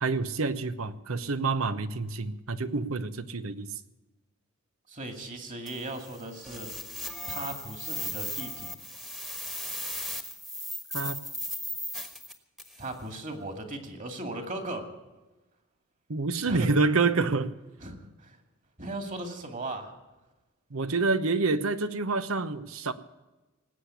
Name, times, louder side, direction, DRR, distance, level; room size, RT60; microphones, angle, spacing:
voice 1, 0.0-3.7 10.9-11.2 16.1-17.5 20.7-22.9, right 3 dB, 90° right, 12 dB, 1.0 m, -27 dB
voice 2, 4.9-6.7 7.3-8.8 12.8-14.9 16.5-16.7 17.8-18.4 18.8-19.9, right 2 dB, 40° right, 6 dB, 2.4 m, -37 dB
sound 1, 5.7-12.9, equal, ahead, 1.3 m, -37 dB
19.0 x 8.4 x 8.3 m, 1.1 s
head